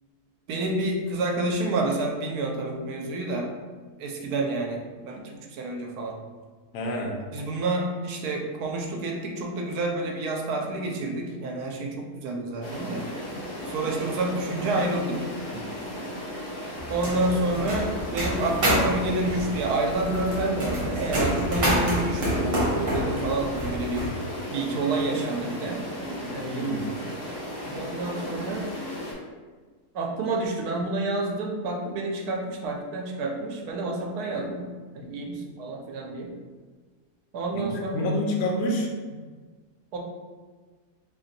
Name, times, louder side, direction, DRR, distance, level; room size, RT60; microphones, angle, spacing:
voice 1, 0.5-3.5 4.0-6.2 7.3-13.0 13.7-15.2 15.5-15.6 16.9-24.1 24.5-25.9 26.2-27.0 27.7-28.7 29.9-34.7 34.9-36.3 37.3-38.1 39.9-40.0, right 2 dB, 75° right, 1 dB, 1.1 m, -29 dB
voice 2, 6.7-7.2 26.4-26.8 37.5-38.9, left 1 dB, 75° left, 0 dB, 1.0 m, -28 dB
sound 1, 12.6-29.1, equal, 30° left, 0.7 m, -36 dB
sound 2, 16.8-24.1, equal, 50° right, 1.1 m, -28 dB
2.9 x 2.5 x 3.9 m, 1.4 s
omnidirectional pair, 1.7 m